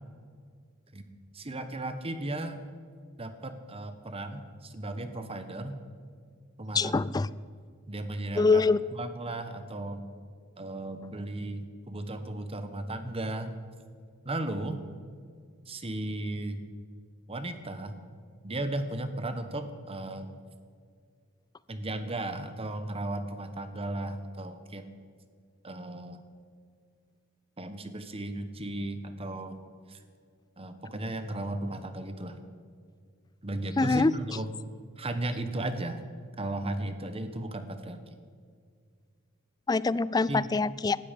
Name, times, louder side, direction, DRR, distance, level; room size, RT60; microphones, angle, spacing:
voice 1, 1.3-2.6 3.2-5.8 6.6-7.0 7.9-8.7 8.9-10.0 10.6-13.5 14.2-14.8 15.7-16.6 17.3-18.0 18.4-20.3 21.7-24.9 25.6-26.2 27.6-29.5 29.9-30.0 30.6-32.4 33.4-34.5 35.0-36.0 36.4-38.0 40.3-40.5, right 1 dB, 30° right, 9 dB, 1.1 m, -35 dB
voice 2, 6.7-7.3 8.4-8.8 33.8-34.1 39.7-41.0, left 3 dB, 20° left, 19 dB, 0.3 m, -24 dB
17.5 x 13.0 x 5.2 m, 2.1 s
head